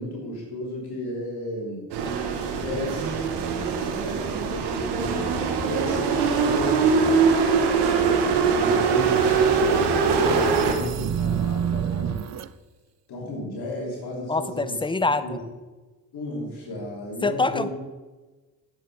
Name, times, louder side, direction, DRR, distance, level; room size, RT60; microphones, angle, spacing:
voice 1, 0.0-1.8 2.5-3.2 3.8-6.8 7.3-12.3 13.1-14.8 15.2-15.4 16.1-17.7, left 1 dB, 65° left, -3 dB, 3.1 m, -34 dB
sound 1, 1.9-10.7, right 5 dB, 80° right, 1.3 m, -22 dB
sound 2, 8.8-12.5, right 9 dB, 40° right, 0.5 m, -30 dB
voice 2, 14.3-15.4 17.2-17.7, left 3 dB, 10° left, 13 dB, 0.6 m, -25 dB
9.3 x 7.6 x 4.7 m, 1.2 s
supercardioid pair, 55°, 41 cm